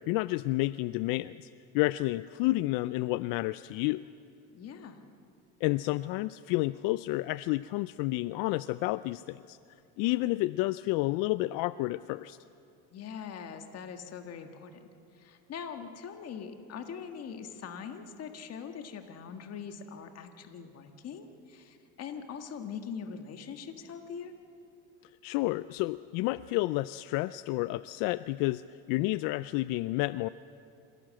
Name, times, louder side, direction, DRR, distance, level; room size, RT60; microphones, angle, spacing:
voice 1, 0.1-1.5 1.7-4.1 5.6-9.6 10.0-12.4 25.2-28.6 28.9-30.3, left 19 dB, 70° left, 16 dB, 0.5 m, -30 dB
voice 2, 4.5-5.0 12.9-24.3, left 7 dB, 45° left, 6 dB, 1.7 m, -42 dB
26.5 x 17.0 x 7.6 m, 2.5 s
supercardioid pair, 110°, 35 cm